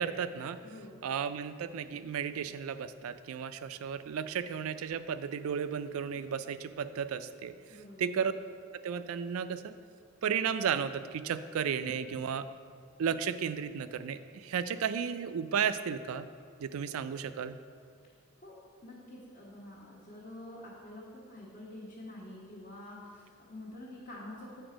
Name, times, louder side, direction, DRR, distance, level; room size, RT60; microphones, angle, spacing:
voice 1, 0.0-0.6 1.0-7.5 8.0-8.3 8.7-9.7 10.2-12.5 13.0-16.3 16.6-17.6, right 7 dB, 80° right, 12 dB, 0.4 m, -33 dB
voice 2, 0.6-1.0 7.7-8.1 18.4-24.6, left 1 dB, 40° left, -8 dB, 1.3 m, -47 dB
7.9 x 4.3 x 5.1 m, 2.3 s
head